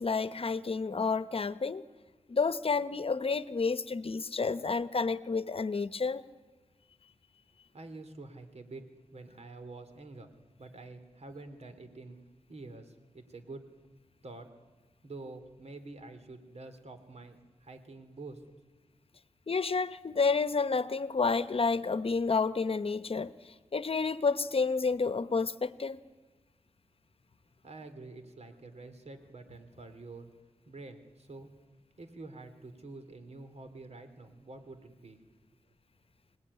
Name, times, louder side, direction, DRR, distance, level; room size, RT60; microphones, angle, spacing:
voice 1, 0.0-1.8 2.3-6.2 19.5-26.0, left 4 dB, 55° left, 0.9 m, -30 dB
voice 2, 7.7-10.3 10.6-12.2 12.5-13.6 14.2-14.5 15.0-18.4 27.6-30.3 30.6-31.5 32.0-35.2, right 3 dB, 70° right, 3.1 m, -47 dB
26.0 x 19.5 x 9.8 m
wide cardioid pair, 75°, 11 cm